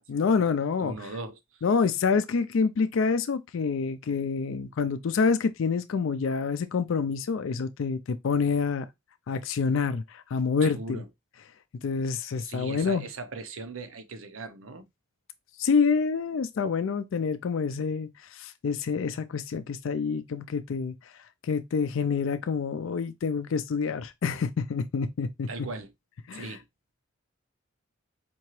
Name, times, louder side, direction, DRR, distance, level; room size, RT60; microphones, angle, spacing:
voice 1, 0.1-0.9 1.6-8.9 9.3-11.0 11.8-13.0 15.6-21.1 21.4-25.5 26.3-26.6, left 5 dB, 70° left, 0.4 m, -27 dB
voice 2, 0.8-1.4 10.6-11.1 12.4-14.8 25.5-25.9 26.3-26.6, right 3 dB, 80° right, 0.7 m, -38 dB
4.4 x 2.8 x 3.0 m
head